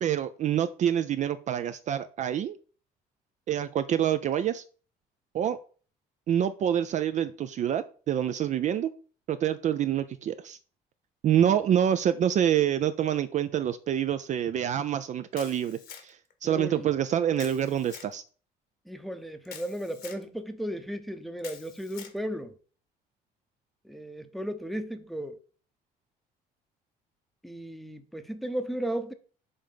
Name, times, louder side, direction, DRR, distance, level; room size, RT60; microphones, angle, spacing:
voice 1, 0.0-2.6 3.5-4.6 5.3-5.6 6.3-8.9 9.3-10.6 11.2-18.2, right 10 dB, 45° right, 0.4 m, -27 dB
Camera, 15.3-16.3 17.4-18.1 19.5-20.2 21.4-22.2, left 8 dB, 65° left, 1.1 m, -46 dB
voice 2, 16.4-16.9 18.9-22.5 23.8-25.4 27.4-29.1, equal, ahead, 0.7 m, -35 dB
5.5 x 3.3 x 5.1 m
cardioid pair, 110°, 17 cm